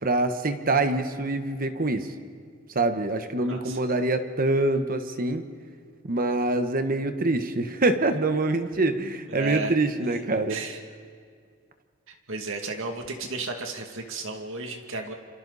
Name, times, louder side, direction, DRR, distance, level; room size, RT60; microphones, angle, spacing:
voice 1, 0.0-2.1 2.7-5.4 6.1-10.6, right 2 dB, 45° right, 8 dB, 1.3 m, -25 dB
voice 2, 3.4-3.8 9.3-9.7 10.1-10.2 10.5-10.8 12.1-15.1, right 3 dB, 65° right, 3 dB, 2.4 m, -34 dB
28.5 x 27.0 x 4.2 m, 2.1 s
head